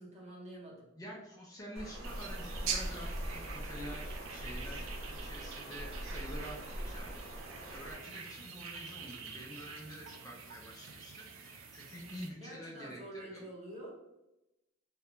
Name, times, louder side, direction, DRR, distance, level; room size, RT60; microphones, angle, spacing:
voice 1, 0.0-0.9 12.4-13.9, right 1 dB, 30° right, -3 dB, 0.6 m, -47 dB
voice 2, 0.9-13.5, equal, 15° left, -2 dB, 0.3 m, -48 dB
Water, 1.8-8.0, equal, 90° right, 0.7 m, -42 dB
sound 1, 2.0-12.3, right 6 dB, 70° right, 0.4 m, -45 dB
2.3 x 2.1 x 2.8 m, 0.95 s
head